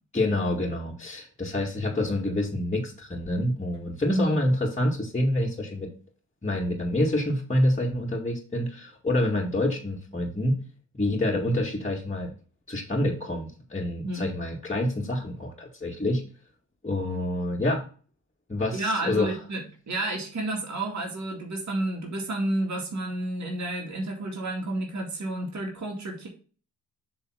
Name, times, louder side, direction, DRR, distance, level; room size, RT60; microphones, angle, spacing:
voice 1, 0.1-5.9 6.4-10.6 10.9-12.3 12.7-16.2 16.8-17.8 18.5-19.3, left 1 dB, 15° left, -4 dB, 2.0 m, -27 dB
voice 2, 18.7-26.3, right 1 dB, 45° right, 0 dB, 2.2 m, -30 dB
7.0 x 3.5 x 5.7 m, 0.38 s
supercardioid pair, 55°, 40 cm